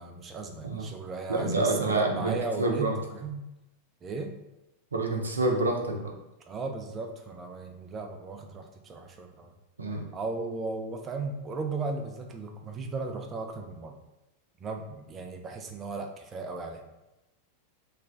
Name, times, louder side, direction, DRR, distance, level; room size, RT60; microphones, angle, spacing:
voice 1, 0.0-3.4 4.0-4.3 6.5-9.5 10.1-14.0 14.6-16.8, right 3 dB, 25° right, 4 dB, 0.5 m, -36 dB
voice 2, 1.3-3.0 4.9-6.1 9.8-10.0, right 2 dB, 75° right, 1 dB, 0.5 m, -27 dB
3.2 x 2.2 x 3.6 m, 0.96 s
figure-of-eight pair, 90°, 0 cm